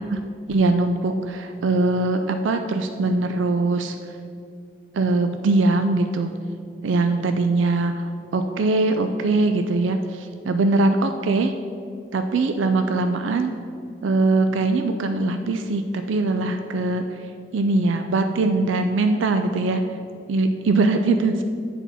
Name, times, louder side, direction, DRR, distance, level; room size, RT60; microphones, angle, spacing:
voice 1, 0.5-3.9 4.9-6.3 6.8-8.1 8.3-11.5 12.1-13.5 14.0-17.2 17.5-19.8 20.3-21.4, right 2 dB, 90° right, 7 dB, 0.4 m, -21 dB
8.3 x 4.3 x 5.4 m, 2.4 s
head